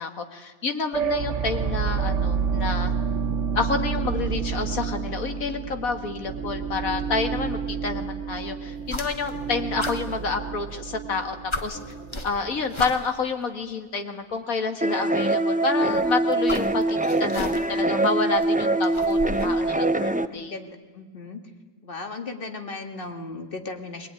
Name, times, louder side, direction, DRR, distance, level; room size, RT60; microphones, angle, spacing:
voice 1, 0.0-2.9 3.5-11.4 11.6-11.8 12.2-20.6, left 4 dB, 75° left, 6 dB, 2.2 m, -29 dB
sound 1, 0.9-12.8, right 6 dB, 60° right, 1.2 m, -29 dB
sound 2, 8.8-9.5 9.8-10.9 11.2-11.3 11.5-13.3 14.3-14.4 15.8-17.9 18.2-19.6, left 2 dB, 20° left, 1.0 m, -35 dB
sound 3, 14.8-20.2, right 2 dB, 10° right, 0.4 m, -23 dB
voice 2, 20.3-21.4 21.8-24.1, left 3 dB, 40° left, 5 dB, 2.3 m, -36 dB
21.5 x 19.5 x 9.9 m, 1.3 s
omnidirectional pair, 1.5 m